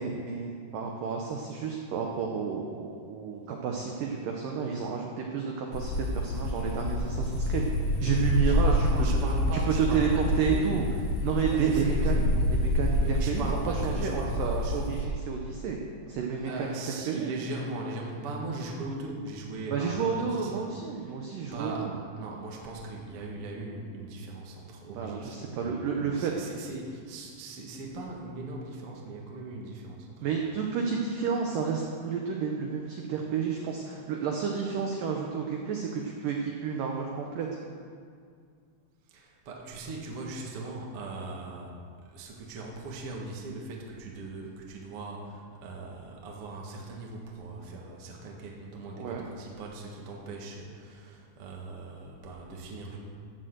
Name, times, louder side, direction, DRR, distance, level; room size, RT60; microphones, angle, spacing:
voice 1, 0.0-7.7 8.0-9.2 9.5-10.9 11.2-15.8 16.1-16.8 17.1-17.3 19.7-21.9 24.9-26.3 30.2-37.5 49.0-49.3, right 6 dB, 85° right, 0 dB, 1.9 m, -31 dB
sound 1, 5.7-15.1, left 1 dB, 85° left, 1.5 m, -27 dB
voice 2, 8.4-10.7 11.4-12.3 13.0-14.8 16.4-20.5 21.1-21.9 22.2-30.3 39.1-41.7 42.1-53.0, right 2 dB, 55° right, -2 dB, 1.5 m, -39 dB
14.5 x 6.4 x 7.9 m, 2.2 s
omnidirectional pair, 5.3 m